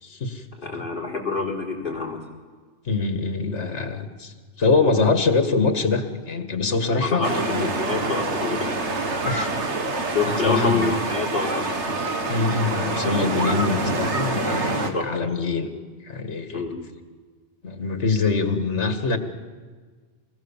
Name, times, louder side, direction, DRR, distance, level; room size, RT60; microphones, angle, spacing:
voice 1, 0.0-0.4 0.7-0.8 2.9-7.7 9.2-9.5 10.4-10.9 12.3-15.7 16.0-16.6 17.6-19.2, left 4 dB, 80° left, 8 dB, 2.0 m, -24 dB
voice 2, 0.6-2.2 7.0-7.4 7.9-8.8 10.1-12.0 14.9-15.0 16.5-16.7, left 4 dB, 50° left, -1 dB, 4.1 m, -27 dB
sound 1, 7.2-14.9, right 2 dB, 80° right, 2.0 m, -26 dB
25.0 x 20.0 x 7.3 m, 1.5 s
omnidirectional pair, 1.2 m